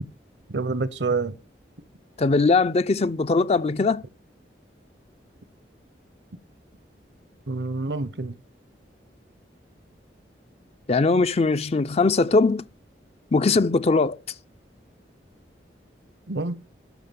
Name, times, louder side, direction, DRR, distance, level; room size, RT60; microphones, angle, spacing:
voice 1, 0.5-1.3 7.5-8.3 16.3-16.6, right 3 dB, 70° right, 0.8 m, -27 dB
voice 2, 2.2-4.0 10.9-12.7 13.3-14.2, left 3 dB, 35° left, 0.5 m, -20 dB
13.5 x 6.0 x 7.0 m
head